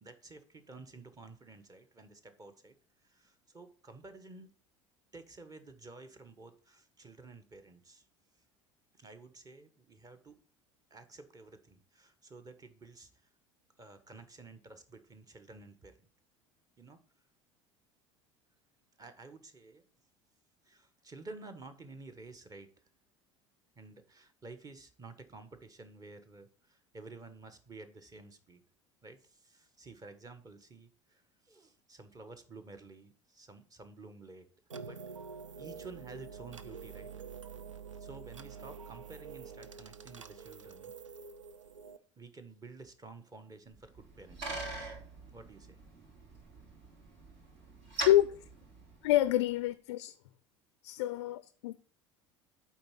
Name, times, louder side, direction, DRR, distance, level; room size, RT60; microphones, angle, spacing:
voice 1, 0.0-2.8 3.0-4.5 5.1-8.0 8.9-10.4 10.9-13.1 13.8-16.1 16.8-17.0 19.0-19.8 20.6-22.7 23.7-28.6 29.0-34.5 34.8-35.0 35.6-37.1 38.0-40.9 42.2-44.4 45.3-45.8, right 3 dB, 25° right, 1.2 m, -52 dB
sound 1, 34.7-42.0, right 6 dB, 85° right, 0.4 m, -47 dB
Bicycle, 43.7-49.5, right 1 dB, 55° right, 3.8 m, -43 dB
voice 2, 48.0-48.4 49.0-50.1 50.8-51.7, left 14 dB, 65° left, 0.4 m, -27 dB
8.7 x 3.8 x 5.7 m
figure-of-eight pair, 70°, 16 cm